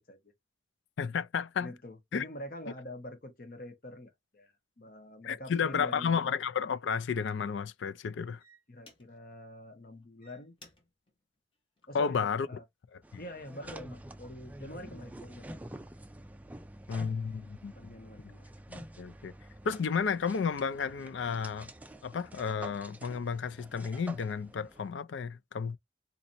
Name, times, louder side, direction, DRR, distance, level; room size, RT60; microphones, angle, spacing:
voice 1, 1.0-1.7 2.1-2.2 5.2-8.4 11.9-12.5 13.1-13.2 16.9-17.9 18.7-19.3 19.6-21.7 22.0-25.8, left 6 dB, 75° left, 0.4 m, -32 dB
voice 2, 1.6-6.3 8.7-10.5 11.9-12.6 13.2-15.5 17.7-18.5, left 1 dB, 50° left, 1.0 m, -45 dB
sound 1, 7.0-7.3 8.0-8.1 8.4-9.4 10.0-12.4 12.9-13.3, left 1 dB, 25° left, 1.0 m, -60 dB
sound 2, 13.0-24.9, right 1 dB, 10° right, 0.3 m, -48 dB
4.1 x 2.8 x 2.6 m
head